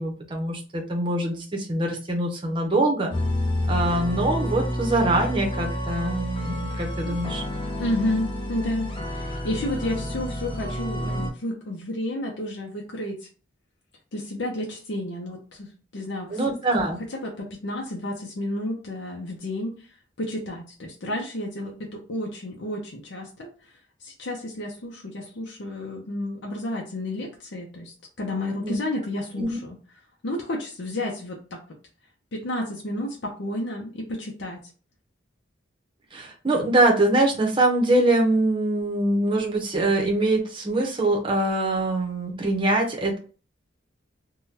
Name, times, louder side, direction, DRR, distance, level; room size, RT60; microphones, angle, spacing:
voice 1, 0.0-3.1 3.7-7.4 16.3-17.0 28.6-28.7 29.4-29.6 36.1-43.2, right 2 dB, 25° right, 0 dB, 0.7 m, -23 dB
sound 1, 3.1-11.3, left 1 dB, 25° left, 0.7 m, -29 dB
voice 2, 7.8-13.3 14.1-19.7 20.2-23.7 24.0-29.8 30.2-31.6 32.3-34.7, left 1 dB, 70° left, -1 dB, 0.6 m, -31 dB
3.6 x 2.2 x 2.7 m, 0.38 s
head